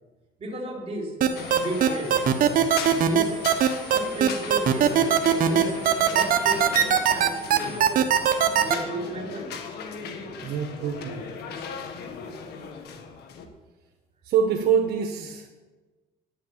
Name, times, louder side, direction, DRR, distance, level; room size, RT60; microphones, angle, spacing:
voice 1, 0.4-1.1 1.6-2.1 2.7-3.4 3.9-5.1 5.5-5.8 6.1-6.7 7.1-7.8 8.6-9.6, right 1 dB, 35° right, -1 dB, 3.4 m, -34 dB
sound 1, 1.2-8.7, right 10 dB, 55° right, 1.1 m, -19 dB
sound 2, 1.4-13.5, left 5 dB, 75° left, 1.6 m, -37 dB
voice 2, 10.4-11.2 14.2-15.5, right 7 dB, 75° right, 2 dB, 1.3 m, -25 dB
10.0 x 7.6 x 8.7 m, 1.2 s
cardioid pair, 110°, 17 cm